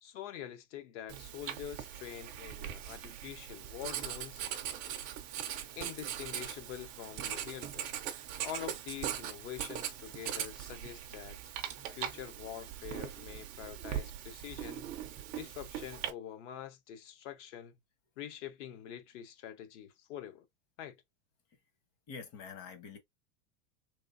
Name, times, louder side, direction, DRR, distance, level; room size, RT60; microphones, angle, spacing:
voice 1, 0.0-4.5 5.8-7.9 8.4-11.4 11.8-14.9 15.4-17.7 18.2-20.5 20.8-21.0, left 10 dB, 65° left, 0.9 m, -45 dB
Writing, 1.1-16.1, right 11 dB, 25° right, 0.3 m, -41 dB
voice 2, 22.1-23.0, left 6 dB, 40° left, 1.2 m, -46 dB
3.4 x 3.0 x 2.5 m
supercardioid pair, 155°, 39 cm